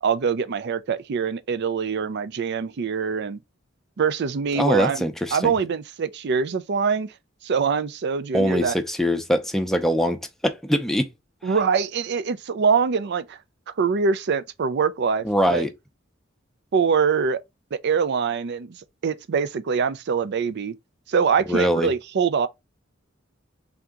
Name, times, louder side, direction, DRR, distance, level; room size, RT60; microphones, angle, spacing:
voice 1, 0.0-3.4 4.0-7.1 7.4-8.8 11.4-13.4 13.7-15.6 16.7-17.4 17.7-18.8 19.0-20.7 21.1-22.5, right 6 dB, 55° right, 0.4 m, -24 dB
voice 2, 4.6-5.5 8.3-11.1 15.2-15.7 21.5-21.9, equal, ahead, 0.6 m, -22 dB
3.5 x 2.8 x 3.6 m
head